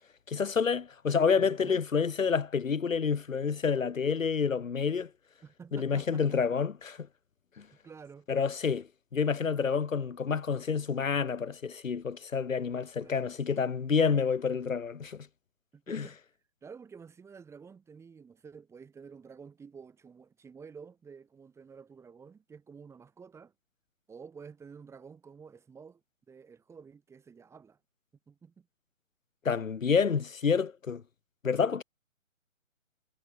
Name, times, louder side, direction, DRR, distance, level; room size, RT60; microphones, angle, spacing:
voice 1, 0.3-5.1 5.7-7.0 7.6-7.7 8.3-15.3 15.9-16.1 29.4-31.0 31.4-31.8, left 6 dB, 75° left, 1.6 m, -28 dB
voice 2, 1.3-1.8 5.4-6.6 7.8-8.3 13.0-13.3 15.7-16.2 16.6-23.5 24.1-26.0 26.3-27.8 28.3-28.7, right 6 dB, 5° right, 2.7 m, -50 dB
figure-of-eight pair, 145°, 39 cm